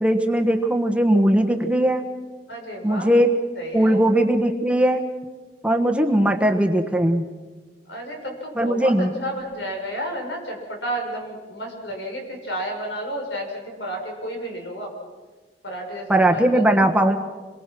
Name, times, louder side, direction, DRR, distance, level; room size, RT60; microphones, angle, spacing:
voice 1, 0.0-2.1 2.8-3.3 3.7-5.1 5.6-7.2 8.5-9.1 16.1-17.2, right 1 dB, 5° right, 3 dB, 1.4 m, -19 dB
voice 2, 2.5-3.1 3.5-4.1 7.9-14.9 15.6-16.6, equal, 80° left, 2 dB, 6.6 m, -31 dB
27.5 x 23.0 x 6.1 m, 1.3 s
head